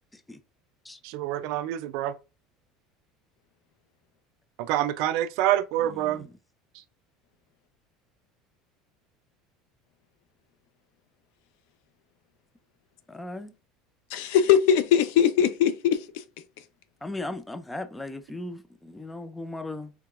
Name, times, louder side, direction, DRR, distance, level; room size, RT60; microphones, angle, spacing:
voice 1, 1.0-2.1 4.6-6.3, right 12 dB, 60° right, 0.4 m, -26 dB
voice 2, 5.8-6.3 13.1-13.5 17.0-19.9, left 2 dB, 5° left, 0.4 m, -37 dB
voice 3, 14.1-16.2, left 9 dB, 75° left, 0.6 m, -21 dB
4.7 x 3.4 x 2.4 m
cardioid pair, 160°, 0 cm